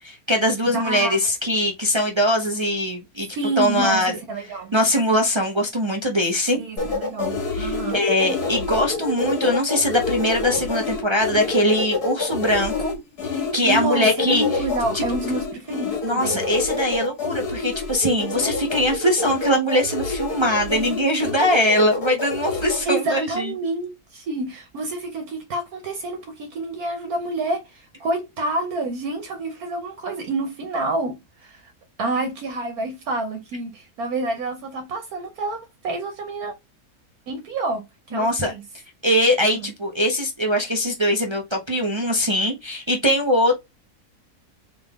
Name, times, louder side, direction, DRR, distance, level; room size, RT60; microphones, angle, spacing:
voice 1, 0.0-3.3 3.6-4.2 4.4-6.6 7.5-12.9 13.2-14.4 14.9-15.0 16.0-23.5 38.1-38.5 39.0-43.5, equal, 45° right, 0.3 m, -22 dB
voice 2, 0.6-1.2 3.3-4.0 4.3-4.7 6.5-8.0 13.6-16.4 22.8-31.6 32.0-36.5 37.3-37.8 38.1-38.6 39.5-39.7, right 2 dB, 70° right, 1.3 m, -28 dB
sound 1, 6.8-22.8, left 3 dB, 80° left, 2.1 m, -27 dB
3.9 x 3.6 x 3.5 m
omnidirectional pair, 1.6 m